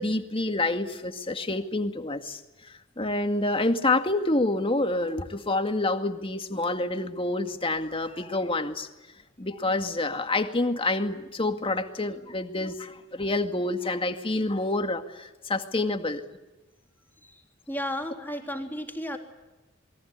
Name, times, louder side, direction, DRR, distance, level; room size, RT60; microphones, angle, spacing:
voice 1, 0.0-8.9 9.4-16.2, left 2 dB, 25° left, 6 dB, 2.2 m, -28 dB
voice 2, 17.7-19.2, equal, 10° left, 2 dB, 3.3 m, -33 dB
28.5 x 22.5 x 8.3 m, 1.1 s
head